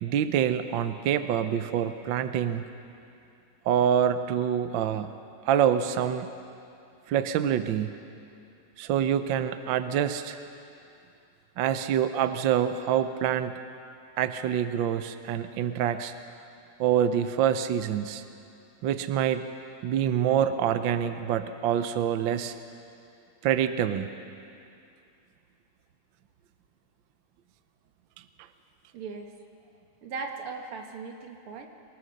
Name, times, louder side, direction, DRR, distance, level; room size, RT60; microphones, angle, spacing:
voice 1, 0.0-2.6 3.6-5.1 5.4-6.3 7.1-7.9 8.8-10.4 11.6-13.6 14.2-16.1 16.8-18.2 18.8-19.5 19.8-22.5 23.4-24.1, right 9 dB, 70° right, 10 dB, 1.4 m, -26 dB
voice 2, 28.9-29.3 30.0-31.7, right 4 dB, 85° right, 3 dB, 2.5 m, -38 dB
23.5 x 20.0 x 6.4 m, 2.6 s
omnidirectional pair, 2.4 m